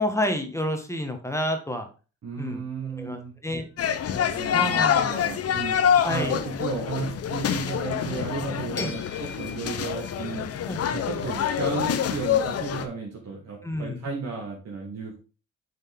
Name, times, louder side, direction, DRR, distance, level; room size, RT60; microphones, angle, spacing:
voice 1, 0.0-1.9 2.4-2.6 3.0-3.6 4.5-5.2 6.0-6.4 8.8-9.0 10.7-10.8 13.6-14.0, left 1 dB, 10° left, 5 dB, 1.3 m, -29 dB
voice 2, 2.2-3.3 4.1-10.5 10.9-15.2, right 4 dB, 55° right, -2 dB, 1.9 m, -34 dB
sound 1, 3.6-5.1 7.9-8.0 8.8-10.4, left 6 dB, 35° left, 1.2 m, -41 dB
sound 2, 3.8-12.9, left 8 dB, 55° left, 0.7 m, -26 dB
7.6 x 4.1 x 3.6 m, 0.34 s
cardioid pair, 90°, 30 cm